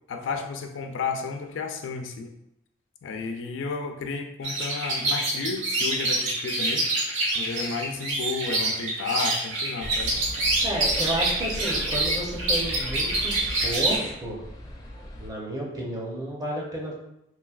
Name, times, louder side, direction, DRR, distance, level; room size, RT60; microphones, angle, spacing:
voice 1, 0.1-2.3 3.0-6.9 7.3-10.1, left 4 dB, 85° left, 5 dB, 0.4 m, -32 dB
sound 1, 4.4-14.0, right 2 dB, 75° right, 0.7 m, -26 dB
sound 2, 9.8-15.3, left 1 dB, 20° left, 0.4 m, -38 dB
voice 2, 10.6-13.3 13.6-14.4 15.2-16.9, right 1 dB, 20° right, -2 dB, 0.6 m, -31 dB
3.1 x 2.7 x 2.3 m, 0.80 s
head